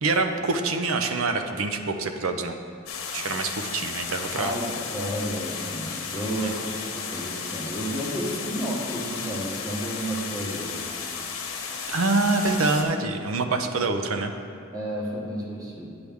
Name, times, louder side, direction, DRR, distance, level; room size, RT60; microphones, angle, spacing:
voice 1, 0.0-2.6 3.1-4.5 6.4-6.5 11.9-14.3, right 3 dB, 85° right, 7 dB, 0.6 m, -25 dB
sound 1, 2.9-12.8, left 6 dB, 90° left, 1.0 m, -34 dB
voice 2, 4.3-10.8 13.6-13.7 14.7-15.9, equal, 15° right, -2 dB, 1.2 m, -32 dB
9.6 x 7.8 x 3.5 m, 2.5 s
head